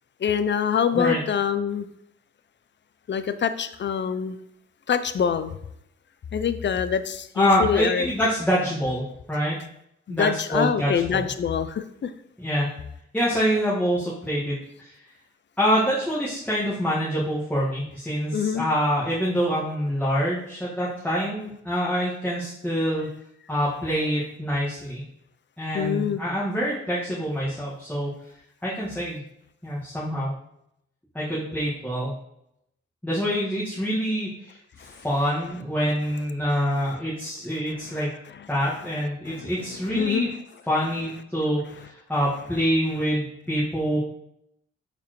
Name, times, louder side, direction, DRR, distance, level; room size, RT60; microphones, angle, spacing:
voice 1, 0.2-1.9 3.1-4.4 4.9-5.5 6.3-8.1 10.1-12.1 18.3-18.7 25.7-26.2 34.8-35.4 37.5-38.0 38.3-40.4 40.7-41.2 42.1-42.6, left 7 dB, 35° left, 11 dB, 0.4 m, -26 dB
voice 2, 7.3-9.6 10.1-11.2 12.4-12.7 13.1-14.9 15.6-23.1 23.5-25.0 25.6-28.1 28.6-29.2 29.6-30.3 31.1-32.1 33.0-38.1 38.5-40.3 40.7-44.0, equal, 5° left, -8 dB, 1.6 m, -26 dB
4.2 x 4.1 x 3.0 m, 0.76 s
hypercardioid pair, 45°, 31 cm